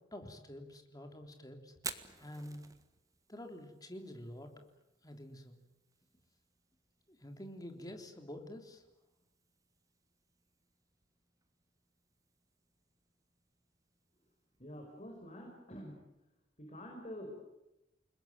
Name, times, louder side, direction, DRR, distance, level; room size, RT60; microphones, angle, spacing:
voice 1, 0.1-1.7 2.2-2.6 3.3-4.7 5.0-5.6 7.1-8.8, left 1 dB, 20° left, 5 dB, 3.5 m, -48 dB
Fire, 1.7-15.6, right 5 dB, 20° right, 1.6 m, -54 dB
voice 2, 14.6-16.0 16.6-17.4, equal, 35° left, 1 dB, 5.7 m, -47 dB
30.0 x 21.0 x 9.3 m, 0.91 s
head